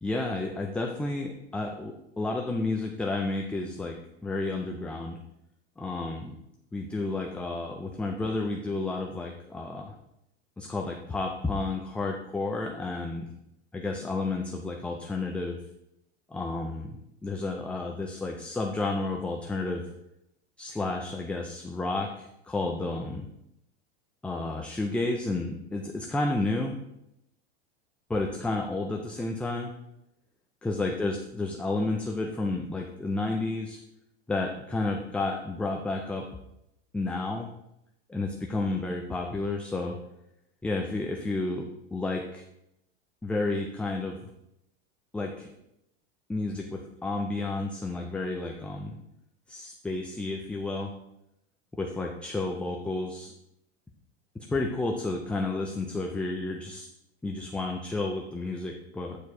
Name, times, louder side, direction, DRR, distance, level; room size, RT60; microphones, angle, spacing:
voice 1, 0.0-4.0 4.2-5.2 5.8-6.3 6.7-9.9 10.6-13.3 13.7-15.6 16.3-19.8 20.6-23.3 24.2-26.8 28.1-29.7 30.6-33.8 34.3-36.3 36.9-37.5 38.1-40.0 40.6-42.4 43.2-44.3 45.1-45.5 46.3-49.0 49.5-50.9 51.8-53.3 54.4-56.9 57.2-59.2, left 2 dB, 5° left, 1 dB, 0.3 m, -31 dB
8.3 x 4.6 x 4.8 m, 0.82 s
supercardioid pair, 135°, 33 cm